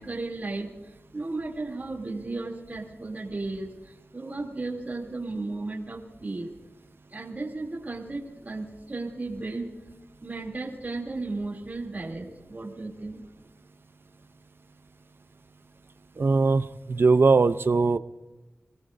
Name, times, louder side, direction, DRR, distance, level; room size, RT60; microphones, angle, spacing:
voice 1, 0.0-6.5 7.1-9.7 10.2-13.2, right 2 dB, 40° right, -3 dB, 2.9 m, -35 dB
voice 2, 16.2-18.0, right 4 dB, 55° right, 12 dB, 0.6 m, -21 dB
25.0 x 18.0 x 2.6 m, 1.1 s
wide cardioid pair, 95°, 4 cm